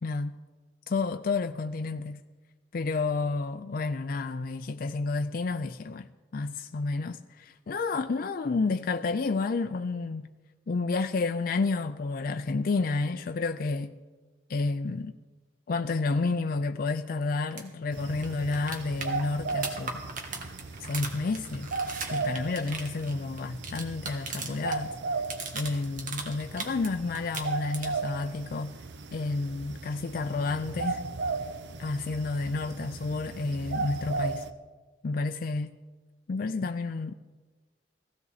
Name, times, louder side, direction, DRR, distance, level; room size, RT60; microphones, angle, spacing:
voice 1, 0.0-0.4 0.9-2.2 2.7-10.2 10.7-13.9 14.5-15.1 15.7-20.0 20.8-21.7 22.1-24.9 25.5-28.8 29.1-31.0 31.8-34.4 35.0-35.8 36.3-37.1, left 3 dB, 55° left, 0.4 m, -30 dB
sound 1, 17.5-17.6 17.9-18.0 18.2-24.8 25.1-26.9 27.1-28.1 30.2-30.3, right 4 dB, 50° right, 1.8 m, -38 dB
sound 2, 17.9-34.5, right 4 dB, 85° right, 0.8 m, -36 dB
16.0 x 16.0 x 4.1 m
head